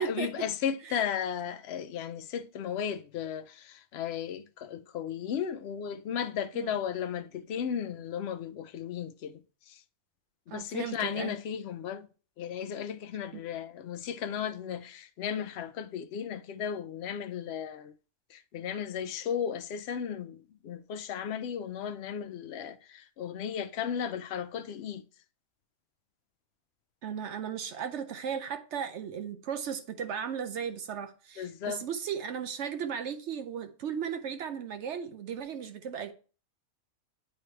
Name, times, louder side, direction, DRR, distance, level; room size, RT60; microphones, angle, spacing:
voice 1, 0.0-9.4 9.7-9.8 10.5-12.1 12.4-17.9 18.3-25.0 31.4-31.8, left 8 dB, 70° left, 0.6 m, -35 dB
voice 2, 10.5-11.3 27.0-36.1, right 7 dB, 65° right, 0.8 m, -36 dB
8.7 x 3.2 x 4.3 m
omnidirectional pair, 1.5 m